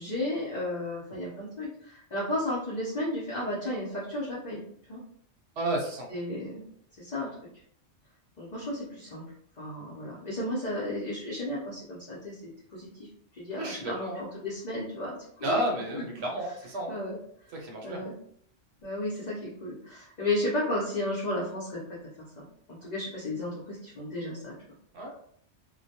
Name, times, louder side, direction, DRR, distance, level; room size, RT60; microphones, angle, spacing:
voice 1, 0.0-4.6 4.9-5.0 6.1-6.6 7.0-7.3 8.4-9.2 9.6-12.4 12.7-12.9 13.3-15.6 15.9-16.0 16.9-17.2 17.8-18.1 18.8-22.0 22.4-22.5 22.8-24.5, left 1 dB, 45° left, -7 dB, 0.6 m, -33 dB
voice 2, 5.6-6.1 13.5-14.3 15.4-16.9 17.5-18.0 24.9-25.1, right 1 dB, 65° right, 0 dB, 0.9 m, -31 dB
2.2 x 2.1 x 2.7 m, 0.66 s
omnidirectional pair, 1.3 m